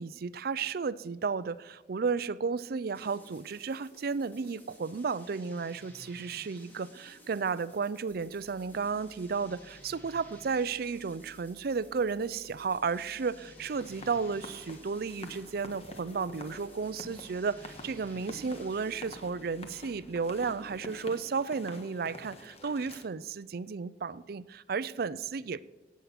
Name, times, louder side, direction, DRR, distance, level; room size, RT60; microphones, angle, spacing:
voice 1, 0.0-25.6, right 5 dB, 60° right, 0.4 m, -33 dB
sound 1, 2.9-19.2, equal, 10° left, 2.7 m, -55 dB
sound 2, 8.1-20.8, equal, 10° right, 2.2 m, -62 dB
sound 3, 13.6-23.1, left 1 dB, 35° left, 1.4 m, -48 dB
17.0 x 8.3 x 5.9 m
head